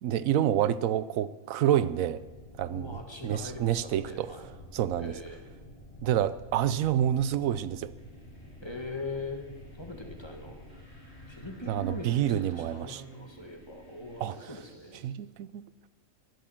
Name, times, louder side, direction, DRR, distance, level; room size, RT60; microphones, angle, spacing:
voice 1, 0.0-2.2 2.6-3.0 3.2-4.3 4.7-5.2 6.0-7.9 11.7-13.0 14.2-14.3 15.0-15.7, right 11 dB, 90° right, 16 dB, 1.0 m, -28 dB
sound 1, 2.2-12.5, left 1 dB, 45° left, 2.8 m, -50 dB
voice 2, 2.7-4.5 5.0-5.5 8.6-9.5 9.8-10.8 11.3-15.0, left 2 dB, 20° left, 2 dB, 1.8 m, -41 dB
sound 2, 7.9-15.1, right 3 dB, 35° right, 5.0 m, -56 dB
12.5 x 11.0 x 7.3 m, 1.2 s
omnidirectional pair, 1.4 m